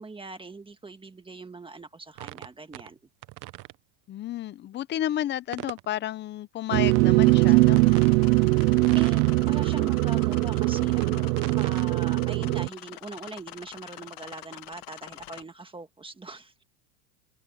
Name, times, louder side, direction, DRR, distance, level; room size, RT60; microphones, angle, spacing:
voice 1, 0.0-3.0 8.9-16.6, right 3 dB, 10° right, 1.7 m, -41 dB
sound 1, 2.2-2.9 3.2-3.8 5.5-5.9 6.9-7.0 7.8-8.1 8.6-9.7 10.1-11.8, right 20 dB, 40° right, 0.8 m, -41 dB
voice 2, 4.1-7.8, left 12 dB, 25° left, 0.6 m, -31 dB
sound 2, 6.7-15.4, left 17 dB, 45° left, 1.5 m, -45 dB
sound 3, 6.7-12.7, right 23 dB, 70° right, 0.6 m, -21 dB
open air
supercardioid pair, 130°, 49 cm